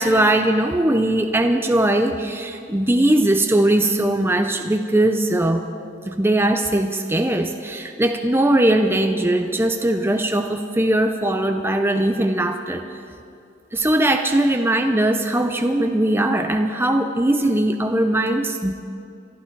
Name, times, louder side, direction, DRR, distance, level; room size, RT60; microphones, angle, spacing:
voice 1, 0.0-5.6 6.1-12.8 13.7-18.7, right 1 dB, 10° right, 5 dB, 0.6 m, -20 dB
26.5 x 11.5 x 4.6 m, 2.5 s
head